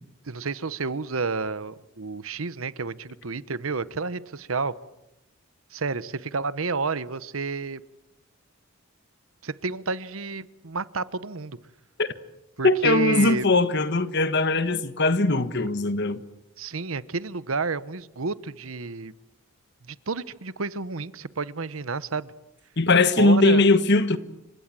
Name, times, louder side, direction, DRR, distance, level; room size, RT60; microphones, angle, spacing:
voice 1, 0.3-4.7 5.7-7.8 9.4-11.6 12.6-13.5 16.6-19.1 19.9-22.3 23.2-23.6, right 4 dB, 75° right, 1.0 m, -30 dB
voice 2, 12.6-16.2 22.8-24.2, left 2 dB, 55° left, 1.4 m, -20 dB
30.0 x 26.0 x 7.6 m
head